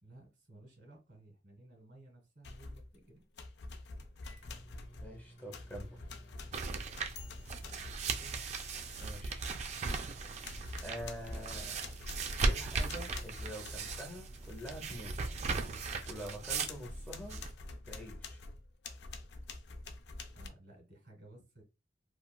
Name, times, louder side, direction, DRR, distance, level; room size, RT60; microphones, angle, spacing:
voice 1, 0.0-3.2 6.3-6.5 7.3-8.4 20.3-21.6, right 1 dB, 70° right, 1.7 m, -57 dB
sound 1, 2.4-3.0 3.4-10.1 10.4-14.8 15.2-15.3 15.7-20.5, left 2 dB, 70° left, 0.4 m, -47 dB
Microwave oven, 4.0-17.6, equal, 85° left, 0.9 m, -61 dB
voice 2, 5.0-6.0 9.0-9.5 10.8-11.8 12.4-15.2 16.0-17.4 17.8-18.4, equal, 10° left, 0.6 m, -46 dB
sound 2, 6.5-17.5, right 4 dB, 40° right, 0.3 m, -38 dB
3.1 x 2.3 x 2.2 m
head